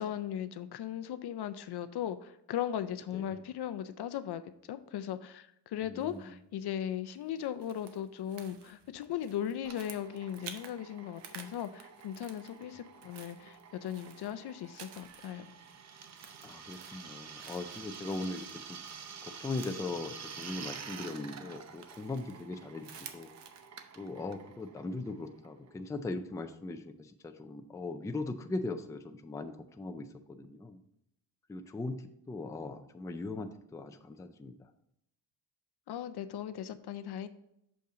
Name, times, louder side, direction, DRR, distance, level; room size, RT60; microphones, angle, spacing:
voice 1, 0.0-4.4 4.7-15.5 35.9-37.3, left 10 dB, 70° left, 11 dB, 0.6 m, -38 dB
voice 2, 5.9-6.2 16.4-18.4 18.7-18.8 19.2-23.3 23.9-26.9 27.2-30.8 31.5-32.0 32.3-34.5, left 2 dB, 10° left, 7 dB, 0.3 m, -39 dB
sound 1, 6.0-6.4 7.1-10.8 11.1-12.7 12.9-23.7, right 7 dB, 90° right, 0.9 m, -53 dB
Drill, 9.6-26.0, right 6 dB, 40° right, 0.6 m, -49 dB
6.6 x 5.5 x 3.8 m, 0.77 s
wide cardioid pair, 160°, 40 cm